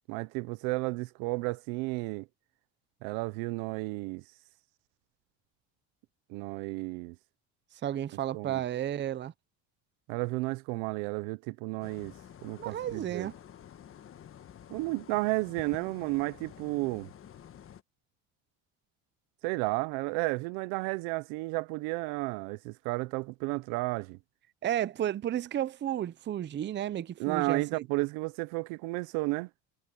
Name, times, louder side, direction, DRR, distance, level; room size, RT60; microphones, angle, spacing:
voice 1, 0.1-2.3 3.0-4.2 6.3-7.1 8.3-8.6 10.1-12.1 12.4-13.3 14.7-17.1 19.4-24.2 27.2-29.5, right 24 dB, 85° right, 0.9 m, -32 dB
voice 2, 7.8-9.3 12.6-13.3 24.6-27.8, right 11 dB, 30° right, 0.6 m, -32 dB
sound 1, 11.8-17.8, left 9 dB, 40° left, 1.4 m, -50 dB
supercardioid pair, 105°, 34 cm